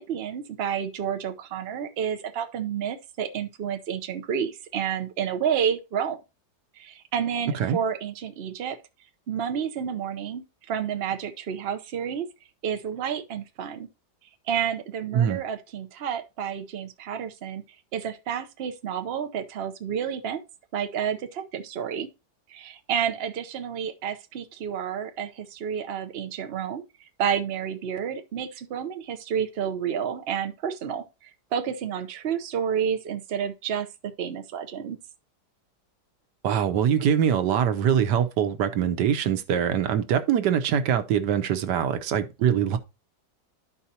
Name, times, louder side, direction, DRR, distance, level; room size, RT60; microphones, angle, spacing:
voice 1, 0.0-6.2 6.8-8.8 9.3-12.3 12.6-13.9 14.5-17.6 17.9-20.4 20.7-22.1 22.5-26.8 27.2-33.9 34.2-35.0, right 8 dB, 50° right, 0.8 m, -30 dB
voice 2, 36.4-42.8, right 8 dB, 85° right, 1.4 m, -23 dB
12.5 x 4.7 x 2.8 m
omnidirectional pair, 1.8 m